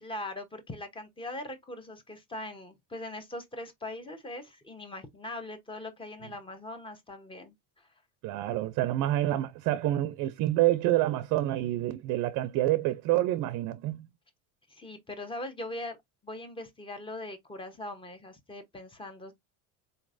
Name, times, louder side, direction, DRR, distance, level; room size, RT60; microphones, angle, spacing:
voice 1, 0.0-7.9 14.7-16.0 16.2-19.3, left 1 dB, 15° left, 1.0 m, -41 dB
voice 2, 8.2-14.1, right 15 dB, 55° right, 0.5 m, -27 dB
4.2 x 3.0 x 2.6 m
cardioid pair, 125°, 35 cm